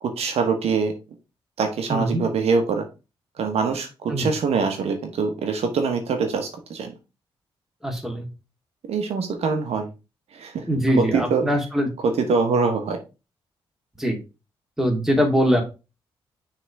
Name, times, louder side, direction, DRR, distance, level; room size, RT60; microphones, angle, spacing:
voice 1, 0.0-0.9 1.6-2.9 3.4-6.9 8.9-9.9 10.3-10.6 10.9-11.5 12.0-13.0, right 5 dB, 75° right, 5 dB, 1.1 m, -24 dB
voice 2, 1.9-2.2 4.1-4.3 7.8-8.3 10.7-11.9 14.0-14.2 14.8-15.6, equal, 5° right, 2 dB, 2.3 m, -22 dB
6.0 x 3.5 x 4.6 m, 0.29 s
supercardioid pair, 55°, 11 cm